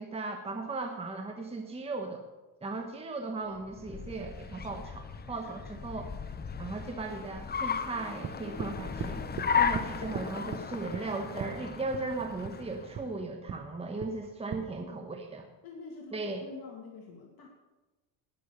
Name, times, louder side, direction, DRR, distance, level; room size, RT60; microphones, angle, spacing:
voice 1, 0.0-2.2 2.6-6.1 6.6-9.2 9.6-15.5 16.1-16.4, right 3 dB, 10° right, 3 dB, 1.2 m, -37 dB
Car, 3.6-13.1, left 6 dB, 20° left, 0.7 m, -35 dB
sound 1, 8.2-8.7 9.0-9.5 9.7-9.9 10.1-10.6 10.9-11.1 11.4-11.5 11.9-12.1 12.4-12.6 12.9-13.1 13.5-13.6 14.0-14.1 14.5-14.6, right 7 dB, 35° right, 0.9 m, -37 dB
voice 2, 14.4-15.1 15.6-17.5, left 4 dB, 50° left, 0 dB, 2.3 m, -47 dB
19.0 x 6.6 x 6.8 m, 1.1 s
cardioid pair, 125°, 48 cm